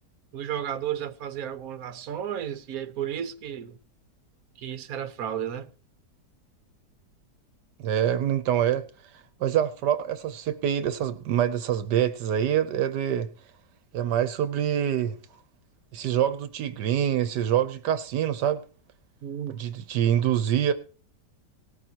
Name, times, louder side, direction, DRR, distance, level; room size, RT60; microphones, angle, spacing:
voice 1, 0.3-3.8 4.6-5.7 19.2-19.6, right 9 dB, 60° right, 1.3 m, -33 dB
voice 2, 7.8-8.9 9.4-13.3 13.9-15.2 15.9-18.6 19.6-20.7, right 10 dB, 80° right, 1.4 m, -25 dB
19.0 x 13.5 x 2.9 m
omnidirectional pair, 1.8 m